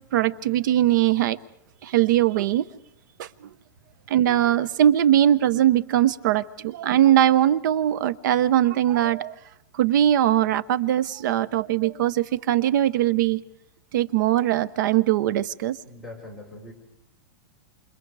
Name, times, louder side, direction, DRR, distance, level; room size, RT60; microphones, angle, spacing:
voice 1, 0.1-1.4 1.8-2.6 3.2-3.3 4.1-9.3 9.7-13.4 13.9-15.8, right 12 dB, 60° right, 18 dB, 0.9 m, -21 dB
voice 2, 15.8-16.7, left 2 dB, 5° right, -1 dB, 4.5 m, -41 dB
28.0 x 27.5 x 4.8 m, 0.78 s
supercardioid pair, 155°, 11 cm